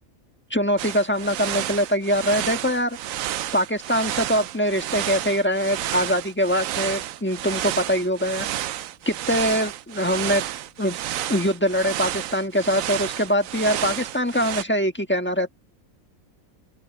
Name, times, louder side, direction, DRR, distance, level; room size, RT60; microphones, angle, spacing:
voice 1, 0.5-3.0 3.5-8.5 9.0-10.4 10.8-11.0 11.3-15.5, equal, 10° left, 1.3 m, -23 dB
sound 1, 0.8-14.6, right 12 dB, 75° right, 1.0 m, -31 dB
open air
omnidirectional pair, 1.4 m